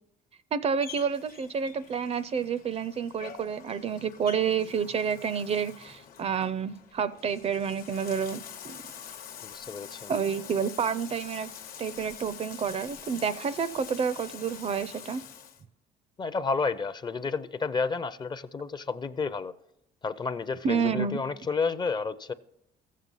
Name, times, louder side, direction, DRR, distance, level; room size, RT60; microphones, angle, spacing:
voice 1, 0.5-8.8 10.1-11.5 11.8-15.2 20.6-21.2, right 6 dB, 40° right, 0.4 m, -29 dB
Bathtub (filling or washing), 0.8-15.6, left 8 dB, 60° left, 0.9 m, -46 dB
voice 2, 9.4-10.1 16.2-19.5 20.0-22.3, left 4 dB, 25° left, 0.5 m, -31 dB
14.5 x 7.4 x 5.5 m
cardioid pair, 110°, 17 cm